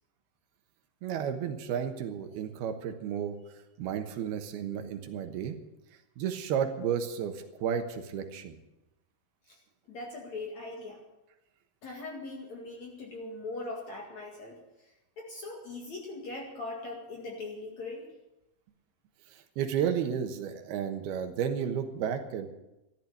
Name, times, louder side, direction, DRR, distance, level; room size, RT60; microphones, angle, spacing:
voice 1, 1.0-3.4 3.8-5.6 6.2-8.6 19.3-22.5, right 8 dB, 80° right, 7 dB, 3.1 m, -32 dB
voice 2, 9.9-11.0 11.8-18.1, left 2 dB, 50° left, -1 dB, 3.0 m, -41 dB
14.5 x 12.0 x 6.8 m, 0.95 s
omnidirectional pair, 4.6 m